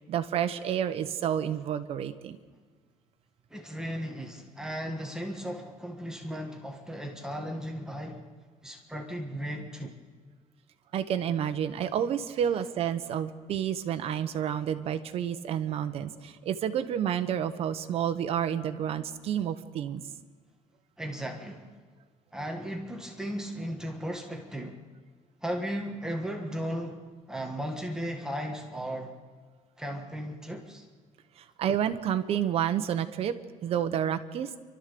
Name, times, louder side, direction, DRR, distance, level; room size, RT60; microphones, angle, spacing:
voice 1, 0.1-2.4 10.9-20.0 31.6-33.3 33.6-34.5, right 9 dB, 50° right, 9 dB, 1.1 m, -29 dB
voice 2, 3.5-8.2 8.6-10.0 21.0-21.7 22.3-24.8 25.4-29.1 29.8-30.8, equal, 5° right, 2 dB, 1.5 m, -36 dB
29.5 x 13.0 x 6.9 m, 1.5 s
cardioid pair, 160°, 13 cm